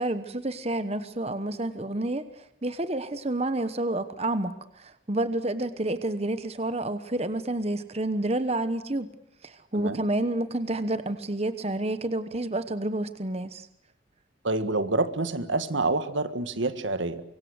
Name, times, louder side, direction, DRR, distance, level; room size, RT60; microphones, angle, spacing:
voice 1, 0.0-2.2 2.6-9.1 9.4-13.7, right 2 dB, 35° right, 11 dB, 1.1 m, -29 dB
voice 2, 14.4-17.2, right 2 dB, 80° right, 11 dB, 1.7 m, -27 dB
25.0 x 23.5 x 8.0 m, 0.73 s
head